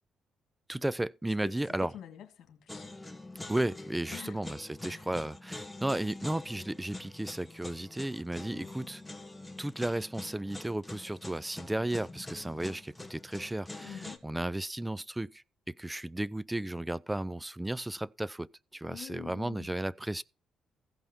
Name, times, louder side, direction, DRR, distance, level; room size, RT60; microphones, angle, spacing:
voice 1, 0.7-1.9 3.5-9.0 9.6-20.2, right 1 dB, 10° right, 0.5 m, -34 dB
voice 2, 1.4-2.9 4.1-4.4 4.8-5.1 8.5-8.9 13.8-14.2 18.8-19.7, left 10 dB, 75° left, 2.1 m, -47 dB
sound 1, 2.7-14.2, left 2 dB, 10° left, 1.4 m, -45 dB
15.5 x 5.5 x 6.0 m
cardioid pair, 90°, 0 cm